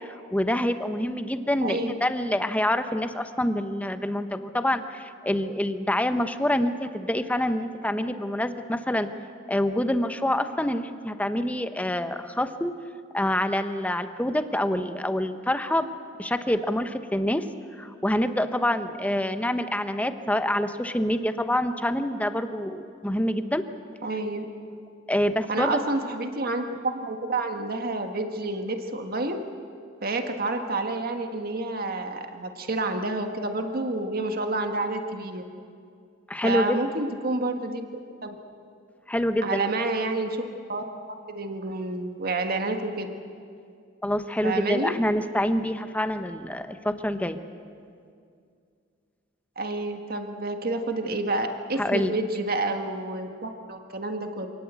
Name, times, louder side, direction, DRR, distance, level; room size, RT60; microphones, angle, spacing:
voice 1, 0.3-9.1 9.5-12.8 13.1-15.9 16.2-17.5 17.8-23.6 25.1-25.8 36.3-36.8 39.1-39.7 44.0-47.4 51.8-52.1, left 1 dB, 10° left, 9 dB, 1.0 m, -26 dB
voice 2, 1.6-2.1 24.0-24.4 25.5-29.4 30.0-35.4 36.4-37.9 38.2-38.3 39.4-43.1 44.4-45.0 49.5-54.5, right 2 dB, 50° right, 5 dB, 1.6 m, -29 dB
27.0 x 19.0 x 8.3 m, 2.3 s
head